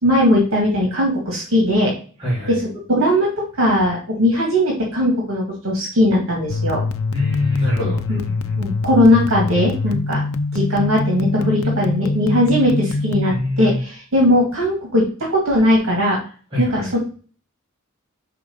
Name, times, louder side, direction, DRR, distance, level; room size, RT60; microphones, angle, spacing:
voice 1, 0.0-1.9 2.5-2.6 2.9-3.3 3.6-6.8 8.1-8.2 8.6-10.2 10.5-15.0 15.3-16.2 16.6-17.0, left 1 dB, 75° right, -2 dB, 2.0 m, -18 dB
voice 2, 2.2-2.6 7.1-8.6 13.2-13.8 16.5-16.9, left 2 dB, 25° right, -9 dB, 2.5 m, -24 dB
sound 1, 6.5-13.3, left 3 dB, 85° left, 0.6 m, -24 dB
5.9 x 3.8 x 5.4 m, 0.40 s
head